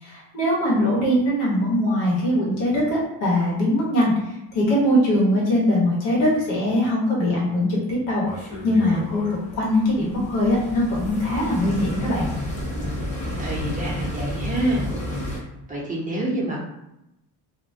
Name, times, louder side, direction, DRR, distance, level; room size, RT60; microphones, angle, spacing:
voice 1, 0.0-8.2 8.6-9.3 9.5-12.3, left 1 dB, 85° left, -4 dB, 1.2 m, -21 dB
sound 1, 8.2-15.4, left 1 dB, 15° left, 0.8 m, -31 dB
voice 2, 13.4-14.9 15.3-15.4 15.7-16.6, right 1 dB, 20° right, -4 dB, 0.6 m, -27 dB
2.4 x 2.1 x 2.7 m, 0.87 s
cardioid pair, 95°, 43 cm